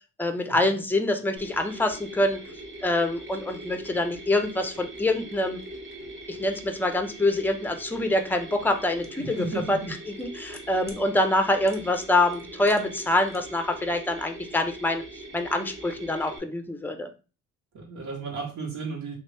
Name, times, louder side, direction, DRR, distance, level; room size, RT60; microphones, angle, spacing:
voice 1, 0.2-2.4 2.8-5.6 6.3-9.8 10.2-17.1, left 2 dB, 5° left, 6 dB, 0.5 m, -25 dB
Mechanisms, 1.4-16.4, right 1 dB, 40° right, 1.0 m, -42 dB
sound 1, 9.0-9.1 10.1-11.0 11.7-12.1 12.3-13.4 13.6-13.7, equal, 10° right, 1.0 m, -47 dB
voice 2, 9.2-9.9 17.7-19.1, right 4 dB, 70° right, 1 dB, 1.3 m, -34 dB
3.0 x 2.5 x 3.3 m, 0.33 s
cardioid pair, 90°, 30 cm